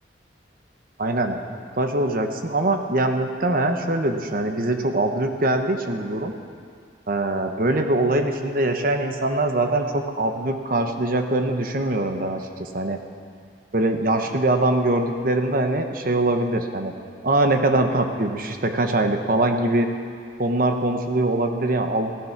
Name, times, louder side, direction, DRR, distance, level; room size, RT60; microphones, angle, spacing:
voice 1, 1.0-6.3 7.1-13.0 13.7-16.9 17.2-19.9 20.4-22.1, right 2 dB, 55° right, 5 dB, 1.1 m, -23 dB
15.5 x 13.5 x 6.0 m, 2.2 s
head